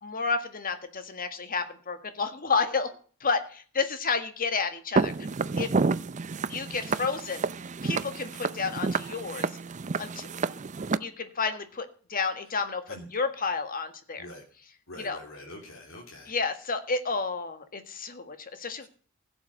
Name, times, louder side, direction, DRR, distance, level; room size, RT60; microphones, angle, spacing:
voice 1, 0.0-5.3 5.6-5.7 6.5-7.4 7.8-9.5 10.0-10.3 11.0-14.3 15.0-15.2 16.3-18.9, left 4 dB, 45° left, 9 dB, 1.8 m, -31 dB
Walk footsteps, 5.0-11.0, right 4 dB, 35° right, 0.5 m, -29 dB
voice 2, 14.9-16.3 18.8-18.9, left 1 dB, 65° left, -1 dB, 3.1 m, -44 dB
16.0 x 7.3 x 6.4 m, 0.42 s
head